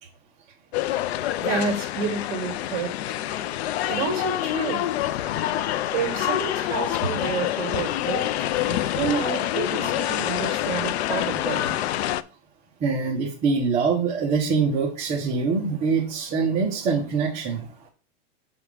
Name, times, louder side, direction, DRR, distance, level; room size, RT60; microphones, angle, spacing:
sound 1, 0.7-12.2, left 13 dB, 65° left, 0.5 m, -26 dB
voice 1, 1.4-2.9 3.9-4.9 5.9-8.3 8.6-11.7, right 6 dB, 45° right, 4 dB, 1.9 m, -29 dB
voice 2, 12.8-17.7, right 5 dB, 20° right, -3 dB, 0.8 m, -24 dB
6.8 x 3.5 x 4.8 m, 0.37 s
supercardioid pair, 165°, 35 cm